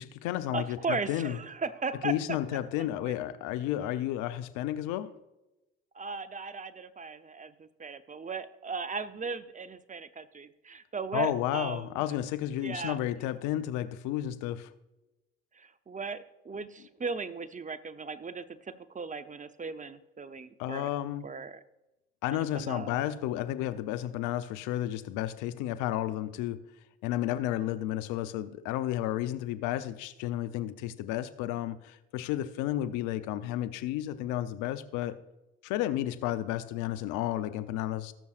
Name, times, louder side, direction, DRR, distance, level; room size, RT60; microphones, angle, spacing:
voice 1, 0.0-1.4 2.0-5.1 11.1-14.7 20.6-21.2 22.2-26.6 27.0-35.2 35.6-38.1, left 13 dB, 75° left, 0.7 m, -32 dB
voice 2, 0.5-2.4 2.8-3.2 5.9-12.0 12.6-13.0 15.5-20.9 21.2-21.6 22.3-23.0, right 4 dB, 25° right, 0.7 m, -37 dB
19.5 x 6.9 x 2.5 m
hypercardioid pair, 60°, 30 cm